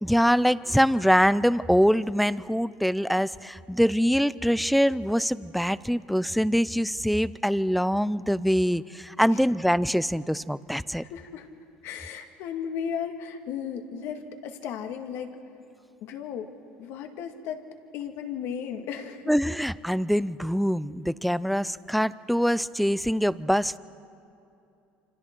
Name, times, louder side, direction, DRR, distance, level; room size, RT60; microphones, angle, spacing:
voice 1, 0.0-11.0 19.3-23.8, equal, ahead, 18 dB, 0.5 m, -24 dB
voice 2, 10.9-11.5 11.8-15.3 16.0-16.5 16.8-17.7 17.9-19.3, left 8 dB, 65° left, 6 dB, 1.9 m, -35 dB
27.5 x 26.0 x 4.6 m, 2.7 s
supercardioid pair, 105°, 5 cm